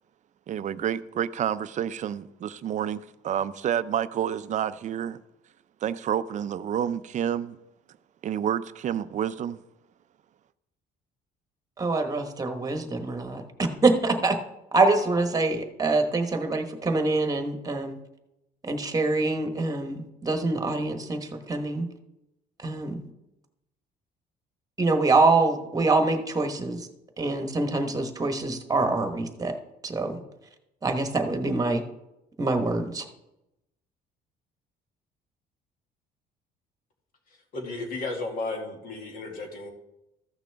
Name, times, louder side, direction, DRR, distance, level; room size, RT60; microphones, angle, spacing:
voice 1, 0.5-5.2 5.8-7.6 8.2-9.6, right 9 dB, 45° right, 0.5 m, -29 dB
voice 2, 11.8-13.4 13.8-14.4 14.7-18.0 18.6-21.9 22.6-23.0 24.8-26.9 27.2-29.5 29.8-30.2 30.8-31.8 32.4-33.0, right 3 dB, 20° right, 1.2 m, -25 dB
voice 3, 37.5-39.7, left 2 dB, 60° left, 2.2 m, -33 dB
14.5 x 6.0 x 3.5 m
cardioid pair, 110°, 17 cm